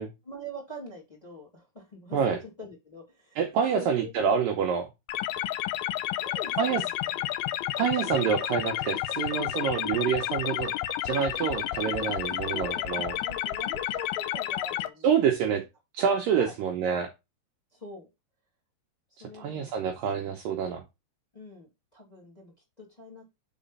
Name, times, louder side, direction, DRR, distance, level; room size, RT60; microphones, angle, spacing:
voice 1, 0.2-3.4 3.7-4.1 6.1-7.5 12.5-15.1 16.4-16.6 17.7-18.1 19.1-19.8 21.3-23.3, left 1 dB, 10° left, -2 dB, 2.2 m, -44 dB
voice 2, 3.4-4.9 6.6-6.8 7.8-10.7 11.0-13.1 15.0-15.6 15.9-17.1 19.4-20.8, right 7 dB, 75° right, 2 dB, 2.1 m, -27 dB
sound 1, 5.1-14.9, left 13 dB, 80° left, 2.4 m, -31 dB
5.1 x 4.9 x 5.3 m, 0.23 s
omnidirectional pair, 4.8 m